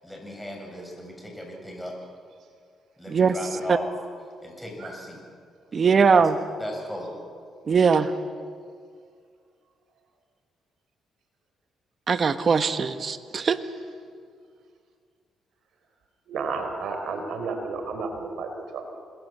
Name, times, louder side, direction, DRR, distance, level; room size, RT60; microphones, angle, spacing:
voice 1, 0.0-1.9 3.0-3.9 4.4-5.2 6.1-6.2 6.6-7.2, left 1 dB, 5° left, 1 dB, 7.6 m, -36 dB
voice 2, 5.7-6.3 7.7-8.1 12.1-13.6, right 5 dB, 45° right, 10 dB, 1.3 m, -20 dB
voice 3, 16.3-18.9, right 4 dB, 70° right, 5 dB, 4.1 m, -32 dB
26.5 x 21.0 x 7.6 m, 2.2 s
cardioid pair, 90°, 0 cm